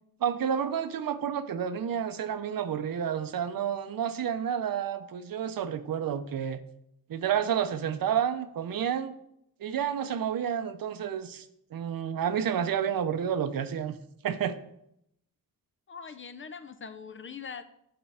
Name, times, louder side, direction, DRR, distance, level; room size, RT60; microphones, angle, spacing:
voice 1, 0.2-6.6 7.1-9.1 9.6-11.5 11.7-14.0 14.2-14.6, right 8 dB, 70° right, 11 dB, 0.7 m, -30 dB
voice 2, 15.9-17.6, left 6 dB, 35° left, 10 dB, 0.4 m, -42 dB
8.7 x 6.0 x 3.4 m, 0.76 s
wide cardioid pair, 125°, 36 cm